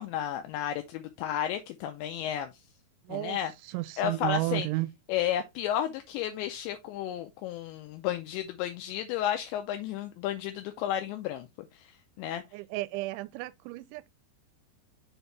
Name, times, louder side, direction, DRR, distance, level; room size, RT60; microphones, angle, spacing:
voice 1, 0.0-2.6 3.1-3.5 4.0-4.7 5.1-12.4, left 11 dB, 80° left, 2.8 m, -32 dB
voice 2, 3.0-4.9 12.5-14.1, right 20 dB, 85° right, 2.9 m, -33 dB
6.8 x 4.5 x 3.2 m
omnidirectional pair, 5.4 m